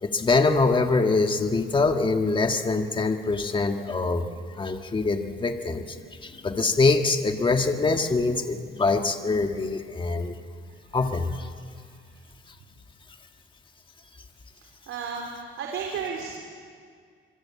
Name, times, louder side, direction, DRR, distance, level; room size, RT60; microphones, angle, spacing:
voice 1, 0.0-4.2 4.6-6.0 6.2-10.3 10.9-11.5, left 3 dB, 25° left, 5 dB, 1.7 m, -24 dB
voice 2, 14.9-16.4, right 6 dB, 75° right, 0 dB, 3.5 m, -33 dB
26.0 x 24.0 x 8.6 m, 2.1 s
cardioid pair, 125°, 21 cm